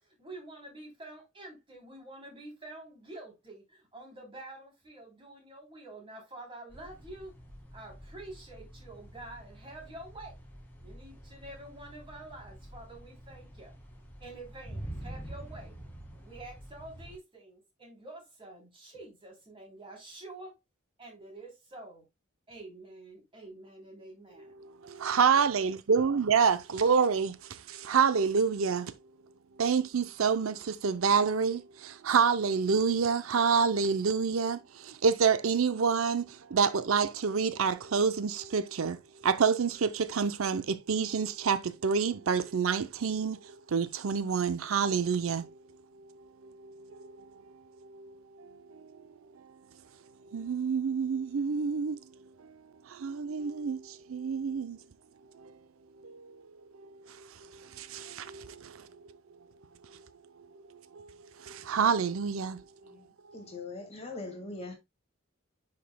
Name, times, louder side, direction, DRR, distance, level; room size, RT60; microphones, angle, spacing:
voice 1, 0.0-7.3 7.7-10.4 10.8-13.7 14.2-15.8 16.2-20.6 21.0-22.0 22.5-24.6 24.9-25.0 26.7-27.0, right 2 dB, 25° right, 3.3 m, -48 dB
sound 1, 6.7-17.2, right 1 dB, 10° left, 1.8 m, -47 dB
voice 2, 24.6-28.9 29.6-45.5 46.4-47.1 47.9-48.9 50.3-52.0 52.4-52.5 52.9-54.8 55.4-55.5 56.0-56.4 57.1-57.3 57.6-58.9 60.9-61.1 61.4-62.6, right 6 dB, 85° right, 0.6 m, -28 dB
voice 3, 63.3-64.7, left 3 dB, 30° left, 1.8 m, -41 dB
10.0 x 5.3 x 2.2 m
head